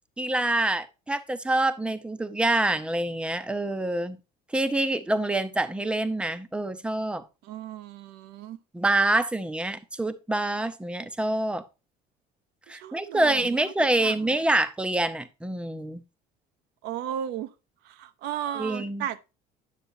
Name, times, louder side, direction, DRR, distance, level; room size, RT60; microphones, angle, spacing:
voice 1, 0.2-4.2 4.5-7.2 8.7-11.6 12.7-16.0 18.6-19.0, right 2 dB, 5° right, 0.7 m, -26 dB
voice 2, 7.4-8.6 12.7-13.4 14.0-14.3 16.8-17.5 17.8-19.3, right 10 dB, 75° right, 0.7 m, -35 dB
9.7 x 6.7 x 2.7 m
cardioid pair, 125°, 17 cm